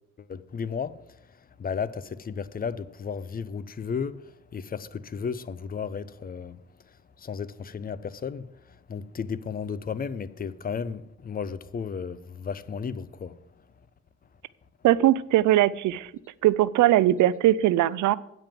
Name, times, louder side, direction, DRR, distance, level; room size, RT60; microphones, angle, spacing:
voice 1, 0.2-1.0 1.6-6.6 7.2-13.4, left 6 dB, 30° left, 0.5 m, -34 dB
voice 2, 14.8-16.1 16.4-18.2, right 13 dB, 75° right, 0.5 m, -20 dB
9.0 x 5.3 x 7.4 m
cardioid pair, 90°, 30 cm